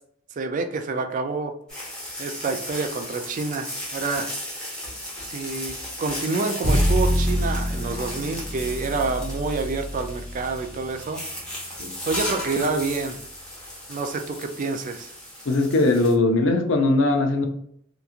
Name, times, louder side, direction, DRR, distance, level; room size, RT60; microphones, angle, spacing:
voice 1, 0.4-1.5 2.2-4.3 5.2-11.2 11.7-11.8 12.1-13.2 13.9-15.1, right 4 dB, 40° right, 7 dB, 0.3 m, -28 dB
sound 1, 1.7-16.1, left 1 dB, 5° left, 0.8 m, -35 dB
Bowed string instrument, 6.6-12.8, equal, 70° right, 0.9 m, -27 dB
voice 2, 15.5-17.5, left 2 dB, 75° left, 4 dB, 0.5 m, -20 dB
2.9 x 2.3 x 2.4 m, 0.66 s
head